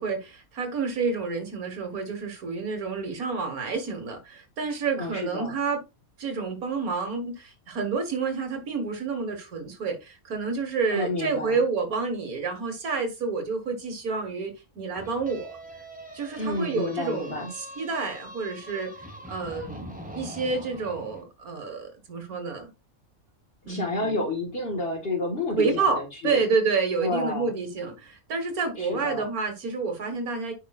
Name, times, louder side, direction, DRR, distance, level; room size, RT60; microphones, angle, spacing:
voice 1, 0.0-5.8 6.2-15.5 16.1-22.7 23.6-24.2 25.5-30.5, right 4 dB, 90° right, 2.1 m, -29 dB
voice 2, 5.0-5.5 10.9-11.6 16.4-17.5 23.6-26.4 27.0-27.5 28.8-29.3, left 2 dB, 45° left, 1.9 m, -30 dB
sound 1, 15.0-21.2, equal, 5° right, 1.7 m, -43 dB
9.8 x 5.6 x 2.4 m
omnidirectional pair, 1.5 m